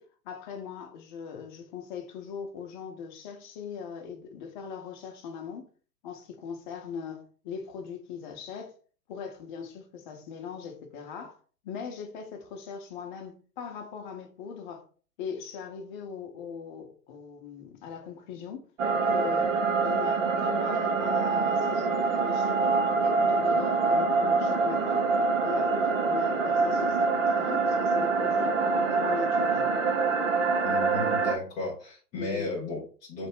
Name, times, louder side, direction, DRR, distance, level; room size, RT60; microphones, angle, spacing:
voice 1, 0.0-5.7 6.0-8.7 9.1-11.4 11.6-14.9 15.2-18.7 19.0-19.6 19.8-25.1 25.4-29.7 32.1-32.5, left 6 dB, 30° left, 0.8 m, -40 dB
sound 1, 18.8-31.4, right 4 dB, 50° right, 0.8 m, -25 dB
voice 2, 30.6-33.3, left 2 dB, 10° left, 0.4 m, -34 dB
3.4 x 2.9 x 4.5 m
figure-of-eight pair, 115°, 47 cm